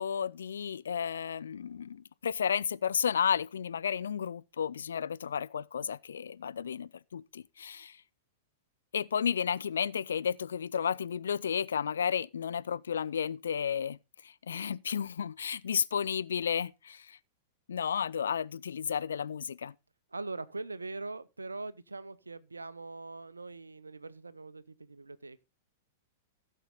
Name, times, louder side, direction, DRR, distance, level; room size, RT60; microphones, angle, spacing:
voice 1, 0.0-8.0 8.9-14.0 14.2-17.2 17.7-19.7, left 7 dB, 65° left, 0.4 m, -32 dB
voice 2, 20.1-25.4, right 3 dB, 80° right, 0.7 m, -42 dB
15.5 x 6.5 x 4.0 m
figure-of-eight pair, 100°, 0 cm